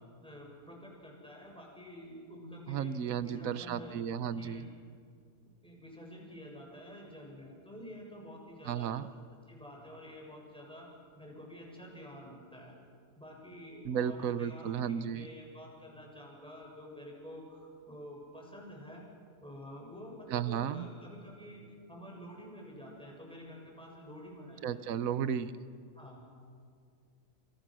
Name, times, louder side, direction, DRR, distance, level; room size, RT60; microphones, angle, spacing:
voice 1, 0.2-2.9 3.2-4.0 4.3-4.7 5.4-8.9 9.5-10.9 11.2-12.7 13.2-19.0 19.4-25.1 25.9-26.2, equal, 5° left, -1 dB, 6.9 m, -49 dB
voice 2, 2.7-4.7 8.7-9.1 13.8-15.3 20.3-20.9 24.6-25.5, right 8 dB, 70° right, 13 dB, 1.3 m, -34 dB
29.0 x 28.0 x 6.3 m, 2.2 s
omnidirectional pair, 1.5 m